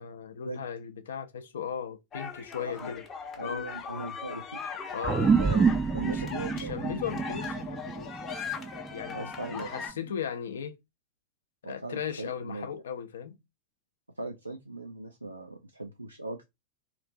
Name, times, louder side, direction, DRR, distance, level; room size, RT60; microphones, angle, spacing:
voice 1, 0.0-3.0 3.4-3.7 4.9-5.4 6.1-6.2 6.5-8.1 8.9-10.8 11.6-13.4, left 8 dB, 65° left, 0.5 m, -37 dB
sound 1, 2.1-9.9, left 5 dB, 25° left, 0.7 m, -39 dB
voice 2, 3.4-4.6 5.2-5.7 5.9-6.9 9.1-9.7 11.6-12.7 14.2-16.4, right 2 dB, 85° right, 0.4 m, -39 dB
sound 2, 5.0-9.8, right 5 dB, 15° right, 0.3 m, -28 dB
3.0 x 2.4 x 3.8 m
figure-of-eight pair, 90°, 0 cm